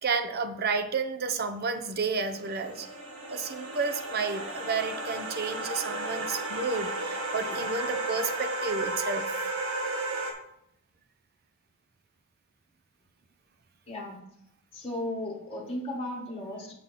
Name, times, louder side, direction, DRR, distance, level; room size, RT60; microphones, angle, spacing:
voice 1, 0.0-2.9 3.3-9.5, right 4 dB, 45° right, 8 dB, 0.6 m, -31 dB
sound 1, 1.9-10.3, right 2 dB, 65° right, 1.2 m, -34 dB
voice 2, 13.9-14.2 14.7-16.7, left 1 dB, 25° left, -4 dB, 1.5 m, -35 dB
6.9 x 5.8 x 4.1 m, 0.74 s
head